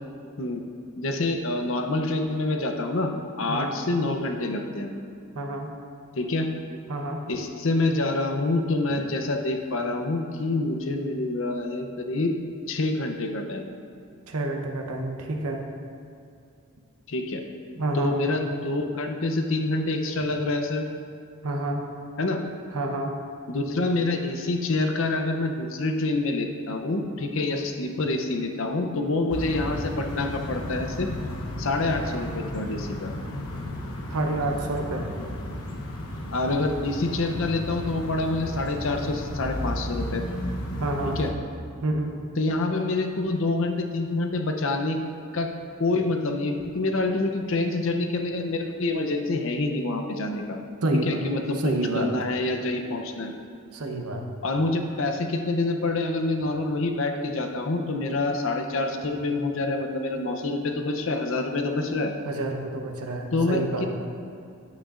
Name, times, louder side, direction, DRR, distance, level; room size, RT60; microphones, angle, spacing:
voice 1, 1.0-3.1 3.4-4.9 6.2-6.5 7.3-12.4 12.7-13.7 17.1-17.4 17.9-20.9 22.2-22.4 23.5-31.1 31.6-33.1 36.3-40.2 41.2-41.3 42.4-45.0 45.3-45.5 45.8-50.6 51.1-53.3 54.4-62.1 63.3-63.9, left 2 dB, 60° left, 4 dB, 0.7 m, -27 dB
voice 2, 5.3-5.7 6.9-7.2 14.3-15.7 17.8-18.2 21.4-21.8 22.4-23.1 34.1-35.1 40.8-41.2 41.8-42.1 50.8-51.2 51.5-52.1 53.7-54.2 62.3-63.9, right 2 dB, 90° right, 2 dB, 0.9 m, -28 dB
sound 1, 29.3-41.3, left 1 dB, 80° left, 0.9 m, -33 dB
9.4 x 8.6 x 2.5 m, 2.5 s
head